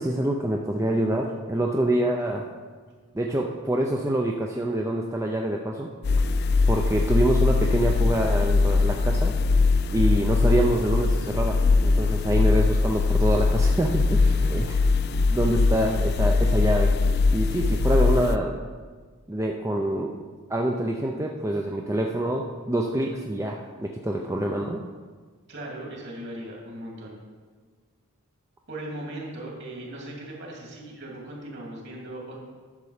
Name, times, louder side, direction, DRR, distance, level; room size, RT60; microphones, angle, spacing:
voice 1, 0.0-2.5 3.1-5.9 6.6-9.3 9.9-14.2 14.5-14.7 15.3-16.9 17.3-18.6 19.3-20.1 20.5-24.8, right 1 dB, 15° right, 0 dB, 0.5 m, -26 dB
sound 1, 6.0-18.4, left 3 dB, 45° left, 0.3 m, -21 dB
voice 2, 14.1-14.8 25.5-27.2 28.7-32.4, right 1 dB, 50° right, -2 dB, 2.6 m, -38 dB
11.0 x 6.8 x 4.9 m, 1.5 s
head